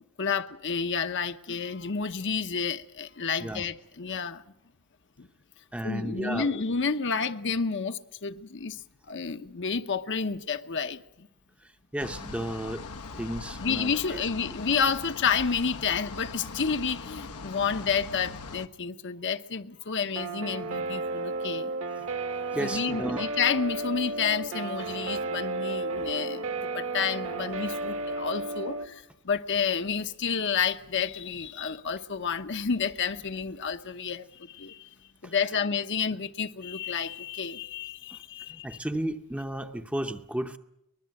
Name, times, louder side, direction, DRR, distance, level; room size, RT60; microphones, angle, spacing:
voice 1, 0.2-4.4 5.2-5.3 5.8-11.3 13.6-21.7 22.6-26.5 26.7-34.9 35.2-38.8, left 6 dB, 55° left, 0.9 m, -30 dB
voice 2, 5.7-6.6 11.6-12.9 13.1-14.2 22.0-22.1 22.5-23.3 35.2-35.4 38.5-40.6, right 1 dB, 5° right, 0.8 m, -33 dB
sound 1, 12.0-18.7, left 4 dB, 85° left, 1.0 m, -41 dB
Guitar, 20.2-28.9, right 3 dB, 65° right, 1.5 m, -33 dB
23.5 x 20.5 x 7.8 m
head